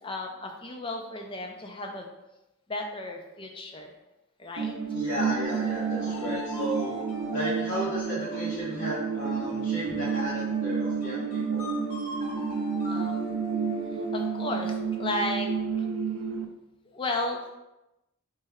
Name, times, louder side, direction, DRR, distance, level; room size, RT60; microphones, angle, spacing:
voice 1, 0.0-2.1 2.7-3.9 4.4-4.7 6.0-6.4 12.9-13.3 13.9-15.5 15.8-15.9 16.9-17.6, left 2 dB, 20° left, 2 dB, 0.4 m, -34 dB
sound 1, 4.6-16.4, right 6 dB, 65° right, 0.4 m, -30 dB
voice 2, 4.9-7.0 7.3-11.7, equal, 50° left, -9 dB, 1.0 m, -34 dB
sound 2, 5.4-14.9, left 1 dB, 85° left, 0.9 m, -41 dB
3.3 x 3.2 x 3.5 m, 0.95 s
head